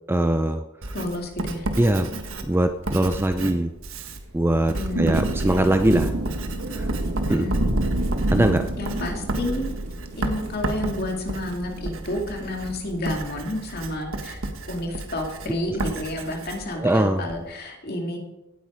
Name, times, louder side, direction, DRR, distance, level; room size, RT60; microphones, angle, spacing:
voice 1, 0.1-0.6 1.8-2.1 2.5-3.7 4.3-6.1 6.7-6.9 7.3-7.5 8.3-8.7 16.8-17.2, right 1 dB, 10° right, 8 dB, 0.4 m, -21 dB
Writing, 0.8-17.4, right 2 dB, 65° right, 1.5 m, -33 dB
voice 2, 0.9-1.6 4.7-5.2 7.3-7.7 8.8-9.7 10.2-14.4 14.7-18.2, left 1 dB, 45° left, 2 dB, 2.4 m, -30 dB
Thunder / Rain, 4.4-13.0, right 1 dB, 80° right, 1.5 m, -29 dB
18.0 x 8.4 x 5.1 m, 0.96 s
head